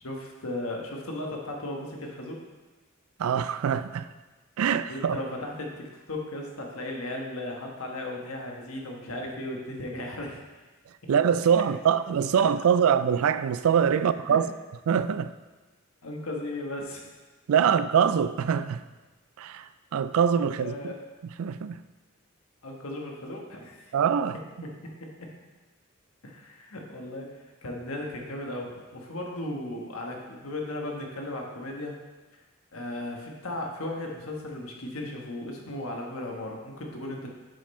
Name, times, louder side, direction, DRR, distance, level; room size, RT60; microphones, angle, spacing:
voice 1, 0.0-2.4 4.9-10.4 14.3-14.4 16.0-17.1 20.5-21.0 22.6-23.9 24.6-24.7 25.0-25.3 26.2-31.9 32.7-37.3, left 1 dB, 85° left, 1.3 m, -36 dB
voice 2, 3.2-4.1 4.6-5.2 11.1-14.5 14.9-15.3 17.5-18.8 19.4-20.9 21.4-21.8 23.9-24.4, right 7 dB, 85° right, 0.3 m, -24 dB
7.5 x 5.5 x 4.2 m
head